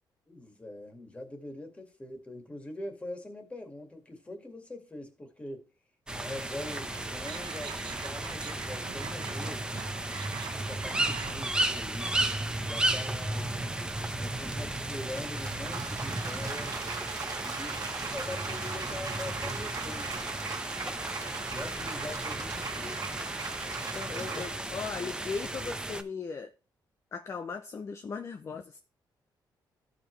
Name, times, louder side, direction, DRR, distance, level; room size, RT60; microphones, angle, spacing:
voice 1, 0.3-5.7 6.1-9.9 10.4-12.3 12.6-13.8 14.1-16.8 17.4-20.4 21.4-23.0 23.7-24.6 24.9-25.2, left 1 dB, 15° left, 2.0 m, -43 dB
sound 1, 6.1-26.0, right 2 dB, 10° right, 0.8 m, -34 dB
sound 2, 6.4-11.4, right 8 dB, 85° right, 1.1 m, -44 dB
sound 3, 14.0-24.5, right 5 dB, 50° right, 1.5 m, -40 dB
voice 2, 23.9-26.5 27.1-28.8, left 5 dB, 35° left, 0.7 m, -38 dB
14.0 x 5.1 x 3.2 m
cardioid pair, 125°, 8 cm